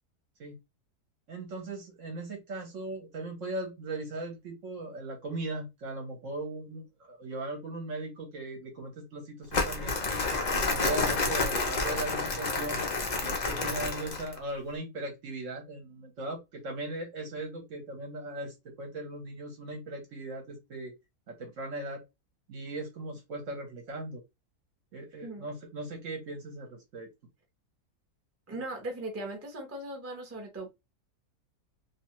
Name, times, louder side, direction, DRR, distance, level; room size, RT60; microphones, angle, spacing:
voice 1, 1.3-10.0 10.5-12.8 13.2-20.9 21.3-22.0 22.5-24.2 24.9-27.1, right 2 dB, 60° right, 3 dB, 1.0 m, -38 dB
Crumpling crinkling, 9.5-14.4, left 3 dB, 70° left, 0.4 m, -29 dB
voice 2, 28.5-30.7, right 2 dB, 15° right, 1 dB, 0.5 m, -38 dB
2.7 x 2.3 x 2.9 m, 0.23 s
omnidirectional pair, 1.8 m